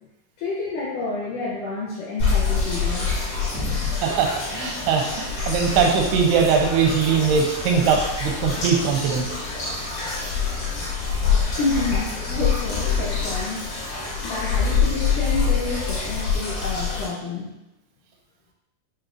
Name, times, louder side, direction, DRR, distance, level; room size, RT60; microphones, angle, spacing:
voice 1, 0.4-3.1 11.3-13.7 14.2-17.5, left 3 dB, 75° left, -7 dB, 1.9 m, -29 dB
sound 1, 2.2-17.1, left 5 dB, 55° left, 2.0 m, -25 dB
voice 2, 4.0-9.3, right 6 dB, 85° right, 1 dB, 2.7 m, -21 dB
7.4 x 2.7 x 2.5 m, 0.91 s
omnidirectional pair, 4.5 m